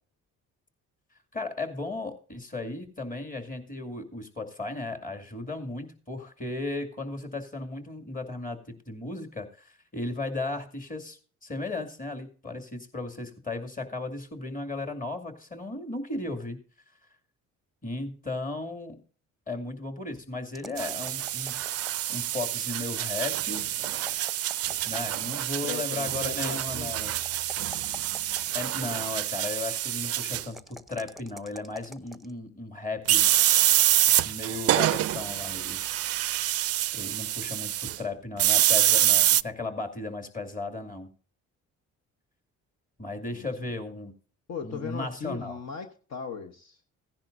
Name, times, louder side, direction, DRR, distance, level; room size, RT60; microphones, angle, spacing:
voice 1, 1.3-8.6 8.9-16.6 17.8-19.0 19.5-21.6 22.1-23.7 24.9-27.1 28.5-33.3 34.2-35.8 36.9-41.1 43.0-44.1 44.6-45.6, left 2 dB, 25° left, 2.4 m, -35 dB
sound 1, 20.5-22.3 23.7-25.6 27.2-29.1 30.4-32.3, right 1 dB, ahead, 0.7 m, -46 dB
sound 2, 20.8-30.4 33.1-38.0 38.4-39.4, right 13 dB, 55° right, 0.4 m, -26 dB
voice 2, 25.6-27.1 43.3-43.5 44.5-46.8, left 6 dB, 60° left, 1.2 m, -38 dB
16.0 x 10.5 x 2.6 m
cardioid pair, 90°, 30 cm